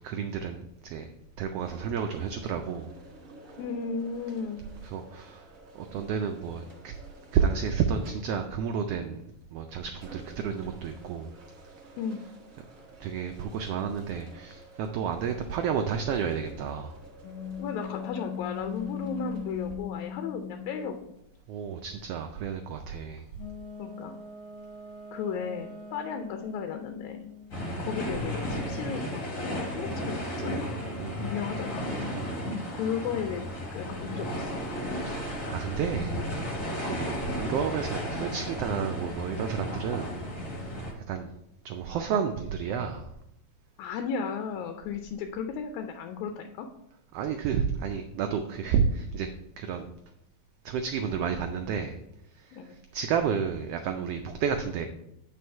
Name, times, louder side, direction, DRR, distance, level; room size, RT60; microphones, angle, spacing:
voice 1, 0.0-2.9 4.8-5.4 5.7-6.9 7.3-9.2 9.5-11.3 13.0-16.9 21.5-23.2 31.0-31.2 32.1-32.4 34.9-36.2 36.8-40.2 41.1-41.3 41.6-43.1 47.1-49.3 49.6-49.9 50.6-52.0 52.4-52.6 52.9-54.9, right 7 dB, 85° right, 6 dB, 1.3 m, -31 dB
sound 1, 1.6-19.8, right 2 dB, 55° right, 0.9 m, -51 dB
voice 2, 3.6-4.6 12.0-12.2 17.6-21.1 23.8-24.1 25.1-27.2 27.8-30.9 31.2-31.9 32.7-34.6 36.9-37.1 43.8-46.7 52.5-52.8, left 6 dB, 85° left, 6 dB, 2.0 m, -35 dB
sound 2, 17.2-21.1 23.4-27.7 29.7-33.5, left 7 dB, 60° left, 1.1 m, -41 dB
sound 3, 27.5-40.9, equal, 40° left, 1.8 m, -34 dB
8.5 x 4.1 x 4.4 m, 0.81 s
omnidirectional pair, 3.3 m